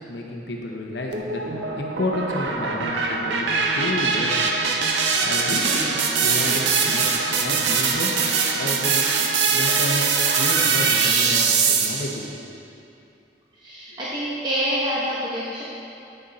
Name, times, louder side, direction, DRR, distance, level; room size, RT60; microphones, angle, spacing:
voice 1, 0.1-1.5 1.8-3.5 3.7-4.3 5.2-7.1 7.4-8.2 8.5-9.0 9.5-12.2, left 1 dB, 75° left, 0 dB, 0.8 m, -30 dB
sound 1, 1.1-12.2, right 5 dB, 90° right, 0.6 m, -22 dB
voice 2, 13.6-15.6, equal, 25° right, -8 dB, 0.9 m, -26 dB
9.1 x 6.4 x 4.1 m, 2.7 s
head